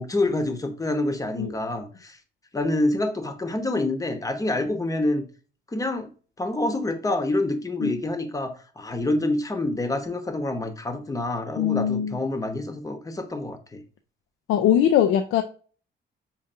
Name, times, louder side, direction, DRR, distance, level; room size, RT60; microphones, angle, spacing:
voice 1, 0.0-2.2 2.5-5.3 5.7-6.1 6.4-13.8, left 2 dB, 15° left, 0.8 m, -27 dB
voice 2, 11.6-12.2 14.5-15.4, left 10 dB, 75° left, 0.4 m, -21 dB
5.4 x 2.6 x 2.5 m
cardioid pair, 90°, 20 cm